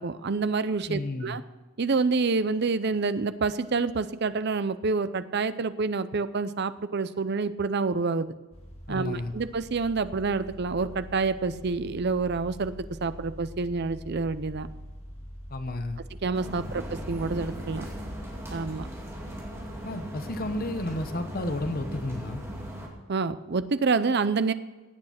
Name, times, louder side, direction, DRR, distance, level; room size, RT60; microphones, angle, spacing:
voice 1, 0.0-1.4 1.8-8.3 8.9-12.7 13.0-14.7 16.2-17.9 18.5-18.9 23.1-24.5, right 4 dB, 55° right, 13 dB, 0.6 m, -27 dB
voice 2, 0.9-1.4 8.9-9.3 15.5-16.0 19.8-22.4, left 1 dB, 45° left, 8 dB, 1.0 m, -32 dB
sound 1, 8.5-19.6, equal, 30° left, 2.1 m, -44 dB
sound 2, 16.3-22.9, equal, 15° right, 2.4 m, -38 dB
16.0 x 8.8 x 5.8 m, 1.3 s
head